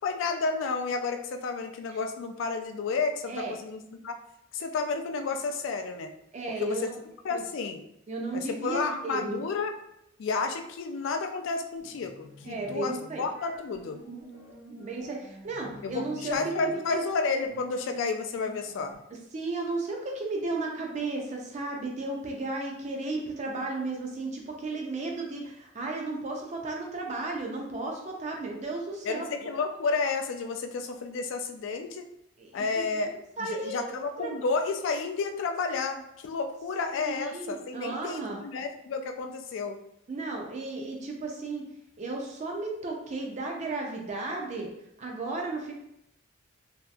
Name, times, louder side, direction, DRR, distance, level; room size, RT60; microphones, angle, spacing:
voice 1, 0.0-4.1 4.5-6.1 6.6-6.8 7.2-7.8 8.3-9.7 10.2-14.0 15.8-18.9 29.1-32.0 32.5-39.8, left 4 dB, 70° left, 6 dB, 0.3 m, -31 dB
voice 2, 6.3-7.0 7.3-7.4 8.1-9.4 12.4-13.2 14.8-17.0 19.3-29.2 32.4-34.3 36.9-38.4 40.1-41.6 42.0-44.7 45.0-45.7, right 3 dB, 35° right, 0 dB, 0.3 m, -34 dB
sound 1, 11.8-18.9, right 1 dB, 90° right, 1.2 m, -48 dB
2.7 x 2.4 x 2.3 m, 0.80 s
head